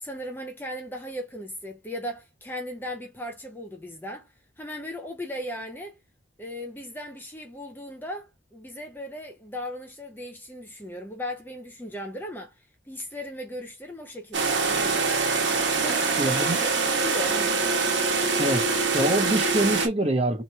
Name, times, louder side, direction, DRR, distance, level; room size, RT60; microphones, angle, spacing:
voice 1, 0.0-4.3 4.6-6.0 6.4-15.0 15.8-17.7, equal, 10° left, 0.5 m, -37 dB
sound 1, 14.3-19.9, right 4 dB, 85° right, 1.1 m, -24 dB
voice 2, 16.2-16.6 18.4-20.4, right 1 dB, 35° right, 0.9 m, -25 dB
3.0 x 2.5 x 4.2 m
head